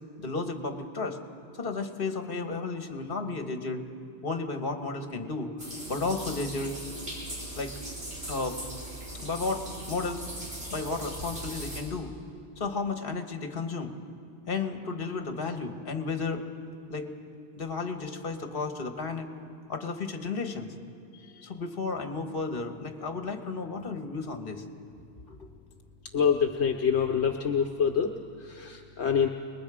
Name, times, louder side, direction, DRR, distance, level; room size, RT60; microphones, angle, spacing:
voice 1, 0.2-1.2 1.5-3.8 4.2-5.5 5.9-6.8 7.5-7.7 8.3-8.6 9.1-10.3 10.7-12.1 12.6-13.9 14.5-16.4 16.9-17.1 17.6-19.3 19.7-20.7 21.2-24.6 25.3-25.5, left 4 dB, 55° left, 6 dB, 1.6 m, -33 dB
sound 1, 5.6-11.8, right 1 dB, 60° right, 5.2 m, -39 dB
voice 2, 26.1-28.1 28.4-29.3, left 7 dB, 70° left, 3 dB, 1.2 m, -26 dB
28.5 x 21.0 x 5.0 m, 2.6 s
omnidirectional pair, 1.2 m